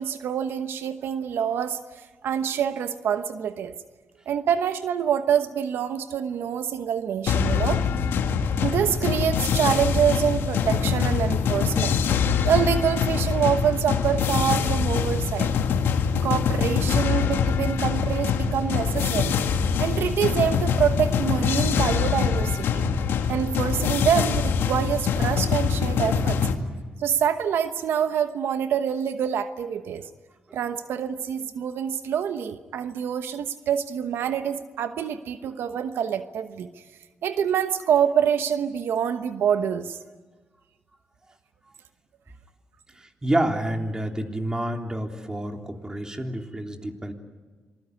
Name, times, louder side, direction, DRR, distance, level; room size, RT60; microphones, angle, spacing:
voice 1, 0.0-3.7 4.3-7.8 8.6-12.0 12.4-15.5 16.2-19.4 19.8-22.8 23.3-26.4 27.0-30.1 30.5-36.7 37.2-40.0, right 8 dB, 80° right, 9 dB, 1.1 m, -26 dB
sound 1, 7.3-26.6, left 6 dB, 90° left, 2.0 m, -24 dB
voice 2, 43.2-47.1, right 1 dB, 20° right, 3 dB, 3.5 m, -28 dB
26.5 x 20.5 x 9.6 m, 1.3 s
cardioid pair, 85°, 4 cm